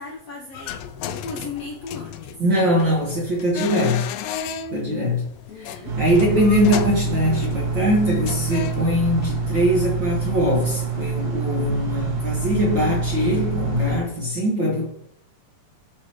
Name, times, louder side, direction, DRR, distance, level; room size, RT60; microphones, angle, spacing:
voice 1, 0.0-2.4 5.5-6.0, left 4 dB, 65° left, -1 dB, 1.6 m, -36 dB
sound 1, 0.5-9.3, left 8 dB, 85° left, 2.3 m, -34 dB
voice 2, 2.4-4.0 4.7-5.3 5.5-14.9, equal, 45° right, -3 dB, 1.6 m, -22 dB
sound 2, 5.9-14.0, right 4 dB, 90° right, 3.8 m, -26 dB
16.0 x 5.9 x 3.1 m, 0.76 s
omnidirectional pair, 3.9 m